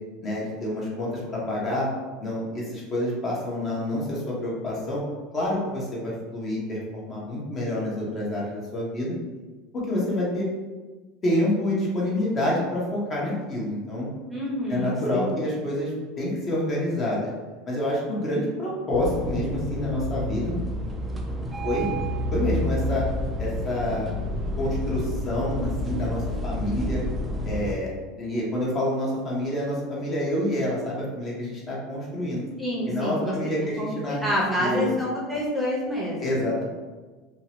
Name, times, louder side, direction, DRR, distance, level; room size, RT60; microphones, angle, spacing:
voice 1, 0.2-1.9 2.2-5.0 5.3-9.1 9.7-10.5 11.2-14.1 14.7-17.3 17.7-20.5 21.6-21.9 22.3-23.1 23.4-24.1 24.6-27.0 27.4-32.4 32.9-34.2 34.6-34.9 36.2-36.6, left 1 dB, 30° left, -5 dB, 0.8 m, -27 dB
voice 2, 14.3-15.4 32.6-33.3 33.8-36.4, left 1 dB, 5° right, -6 dB, 0.7 m, -28 dB
sound 1, 18.9-27.7, left 1 dB, 20° right, 0.3 m, -29 dB
2.7 x 2.0 x 2.8 m, 1.3 s
supercardioid pair, 120°, 0 cm